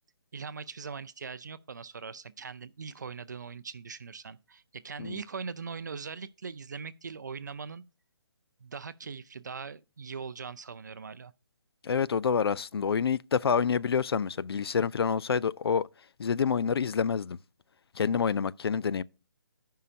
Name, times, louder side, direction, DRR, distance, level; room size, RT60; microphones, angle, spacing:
voice 1, 0.3-7.8 8.6-11.3, right 5 dB, 45° right, 0.5 m, -41 dB
voice 2, 11.8-15.9 16.2-17.4 18.0-19.0, left 6 dB, 75° left, 0.4 m, -27 dB
15.5 x 5.6 x 2.5 m
hypercardioid pair, 175°, 13 cm